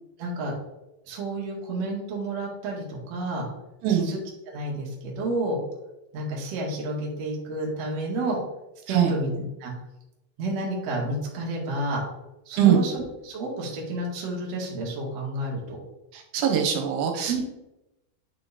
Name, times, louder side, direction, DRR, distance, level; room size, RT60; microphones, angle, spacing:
voice 1, 0.2-0.5 1.1-3.5 3.9-4.2 4.5-5.6 6.1-8.4 8.9-9.3 9.6-9.7 10.4-12.0 12.5-15.8 17.3-17.4, right 2 dB, 55° right, -3 dB, 1.9 m, -30 dB
voice 2, 16.1-17.4, right 9 dB, 80° right, 3 dB, 3.1 m, -22 dB
8.8 x 3.8 x 4.1 m, 0.94 s
omnidirectional pair, 5.5 m